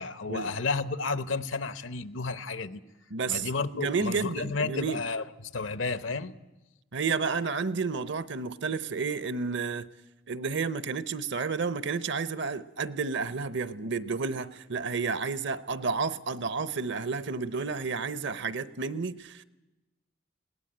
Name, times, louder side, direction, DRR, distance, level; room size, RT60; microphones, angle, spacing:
voice 1, 0.0-2.8 3.3-6.3, left 4 dB, 85° left, 0.9 m, -32 dB
voice 2, 3.1-3.5 3.7-5.0 6.9-9.9 10.3-19.4, right 4 dB, 65° right, 0.8 m, -31 dB
21.0 x 17.5 x 8.8 m
head